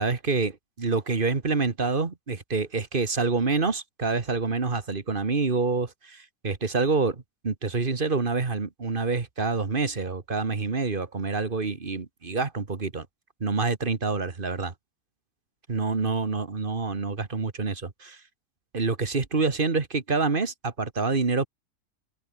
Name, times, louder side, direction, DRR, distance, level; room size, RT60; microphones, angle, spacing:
voice 1, 0.0-13.1 13.4-14.7 15.7-18.2 18.7-21.5, right 4 dB, 35° right, 1.8 m, -27 dB
open air
omnidirectional pair, 1.6 m